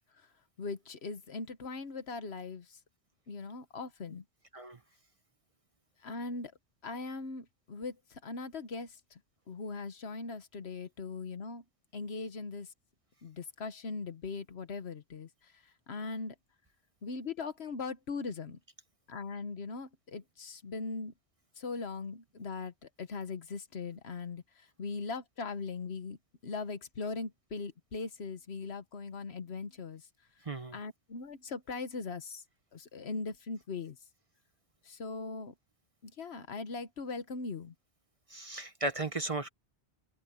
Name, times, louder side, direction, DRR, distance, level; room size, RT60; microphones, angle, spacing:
voice 1, 0.6-2.6 3.3-4.2 6.0-6.5 6.8-7.9 8.2-8.9 9.5-11.6 11.9-12.7 13.2-15.3 15.9-16.3 17.0-18.6 19.1-21.1 21.6-22.7 23.0-24.4 24.8-26.2 26.4-30.0 30.7-32.4 32.7-34.0 34.9-35.5 36.0-37.7, left 4 dB, 65° left, 1.4 m, -39 dB
voice 2, 30.4-30.8 38.3-39.5, right 2 dB, 30° right, 1.0 m, -35 dB
open air
omnidirectional pair, 1.2 m